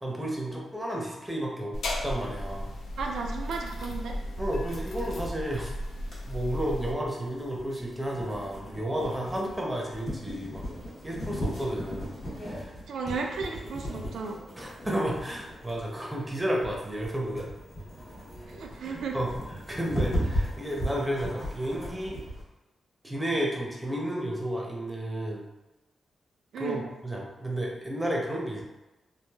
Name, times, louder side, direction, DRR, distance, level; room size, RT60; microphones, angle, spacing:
voice 1, 0.0-1.7 2.0-2.7 4.4-5.7 6.3-10.6 11.0-12.1 12.4-12.7 14.6-17.5 18.8-19.3 19.7-22.2 23.0-25.4 26.6-28.6, right 1 dB, 10° right, -2 dB, 0.6 m, -32 dB
sound 1, 1.7-6.9, left 1 dB, 85° left, 0.4 m, -35 dB
voice 2, 3.0-4.2 12.9-14.4 18.5-19.2 26.5-26.8, right 4 dB, 85° right, 2 dB, 0.3 m, -34 dB
sound 2, 6.1-22.4, equal, 60° left, 1.1 m, -36 dB
3.1 x 2.4 x 2.3 m, 1.0 s
wide cardioid pair, 120°, 0 cm